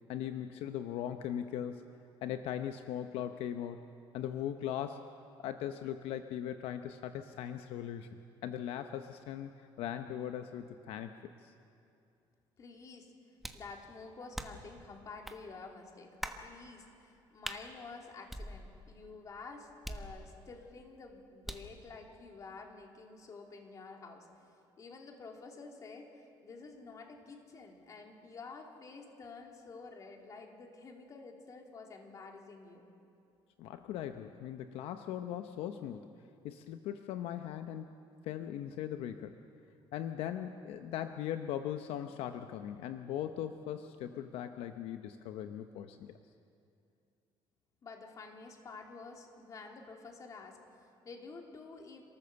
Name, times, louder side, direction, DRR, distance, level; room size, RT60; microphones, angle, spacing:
voice 1, 0.1-1.9 2.2-3.8 4.1-5.1 5.4-8.1 8.4-11.1 11.4-11.5 33.6-36.1 36.4-37.9 38.2-39.4 39.9-46.1, left 10 dB, 80° left, 8 dB, 0.8 m, -39 dB
voice 2, 12.6-13.1 13.5-24.5 24.8-32.8 47.8-52.0, left 4 dB, 35° left, 2 dB, 3.0 m, -50 dB
sound 1, 13.4-13.7 14.3-14.7 15.2-15.4 16.2-16.5 17.4-17.6 18.3-18.9 19.8-20.5 21.4-21.8, equal, ahead, 1.2 m, -43 dB
29.5 x 14.0 x 7.0 m, 2.5 s
cardioid pair, 130°, 10 cm